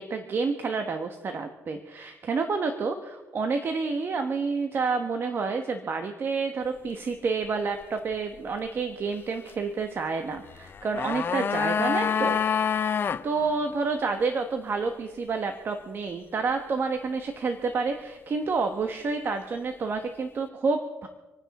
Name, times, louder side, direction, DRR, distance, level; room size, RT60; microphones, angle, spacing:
voice 1, 0.0-12.4 13.2-21.1, right 4 dB, 40° right, 6 dB, 1.3 m, -29 dB
sound 1, 10.6-13.2 13.5-13.6, left 7 dB, 40° left, 0.7 m, -26 dB
27.0 x 9.7 x 4.2 m, 1.2 s
cardioid pair, 110°, 6 cm